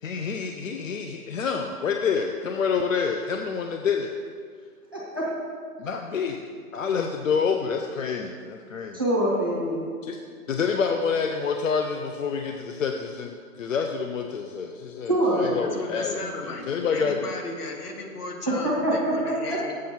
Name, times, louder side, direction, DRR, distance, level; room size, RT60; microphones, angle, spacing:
voice 1, 0.0-4.1 5.8-6.4 6.7-9.0 10.0-10.2 10.5-17.2, left 6 dB, 60° left, 4 dB, 0.6 m, -28 dB
voice 2, 4.9-5.2 8.9-9.8 15.1-15.5 18.5-19.1 19.5-19.6, right 1 dB, 15° right, -6 dB, 0.6 m, -24 dB
voice 3, 15.4-19.7, left 3 dB, 85° left, 2 dB, 1.7 m, -35 dB
7.5 x 6.3 x 5.8 m, 2.1 s
hypercardioid pair, 180°, 45 cm